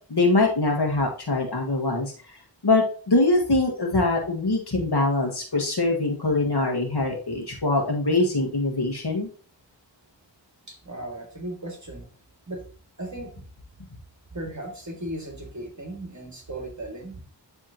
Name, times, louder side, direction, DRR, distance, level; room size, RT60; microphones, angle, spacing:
voice 1, 0.1-2.1 2.6-9.3, left 2 dB, 60° left, 1 dB, 1.8 m, -23 dB
voice 2, 10.7-12.1 12.5-12.6 13.0-13.3 14.3-17.2, right 1 dB, 40° right, 2 dB, 2.2 m, -36 dB
10.5 x 3.6 x 2.9 m, 0.42 s
wide cardioid pair, 70°, 44 cm